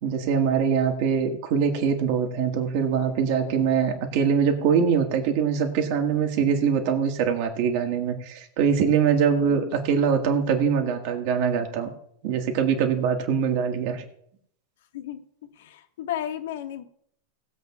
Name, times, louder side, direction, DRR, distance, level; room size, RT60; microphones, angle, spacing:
voice 1, 0.0-11.9 12.2-14.0, right 7 dB, 45° right, 4 dB, 1.7 m, -23 dB
voice 2, 14.9-15.2 15.5-16.8, left 11 dB, 70° left, 6 dB, 1.4 m, -33 dB
19.5 x 7.8 x 2.4 m, 0.68 s
supercardioid pair, 165°, 0 cm